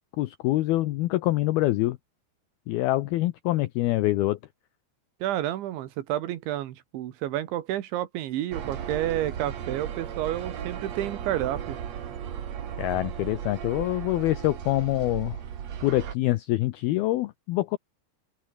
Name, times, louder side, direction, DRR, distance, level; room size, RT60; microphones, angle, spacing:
voice 1, 0.2-2.0 2.7-4.4 12.8-15.4 15.8-17.8, left 17 dB, 75° left, 2.3 m, -25 dB
voice 2, 5.2-11.8, right 13 dB, 85° right, 4.0 m, -30 dB
sound 1, 8.5-16.1, right 9 dB, 50° right, 2.3 m, -36 dB
open air
omnidirectional pair, 5.2 m